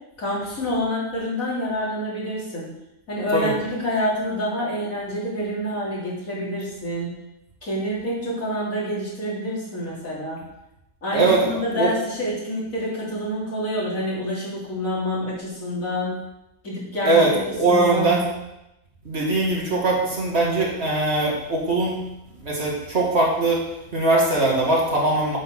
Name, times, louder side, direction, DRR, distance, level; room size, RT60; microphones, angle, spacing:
voice 1, 0.2-2.7 3.1-7.1 7.6-10.4 11.0-16.2 16.6-17.4 17.7-18.1, equal, 85° left, -7 dB, 3.6 m, -27 dB
voice 2, 11.1-11.9 17.1-18.3 19.0-22.0 22.4-23.7 23.9-25.4, right 2 dB, 50° right, -3 dB, 2.4 m, -21 dB
8.0 x 5.8 x 6.1 m, 0.90 s
omnidirectional pair, 1.4 m